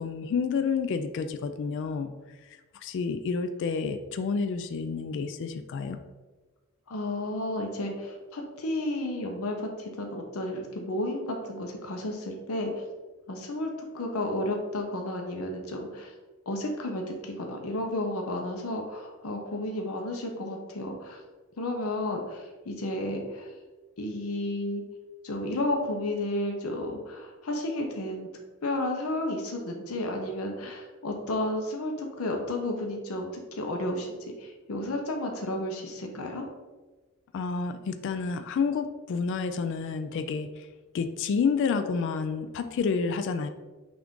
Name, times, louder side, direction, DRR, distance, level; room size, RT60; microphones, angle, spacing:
voice 1, 0.0-2.1 2.8-6.0 37.3-40.7 40.9-43.5, left 5 dB, 60° left, 9 dB, 0.3 m, -29 dB
voice 2, 6.9-12.7 13.3-13.7 13.9-16.1 16.5-21.2 21.6-23.5 24.0-24.8 25.2-28.3 28.6-36.4, left 1 dB, 80° left, 2 dB, 0.7 m, -32 dB
5.8 x 2.5 x 3.6 m, 1.2 s
head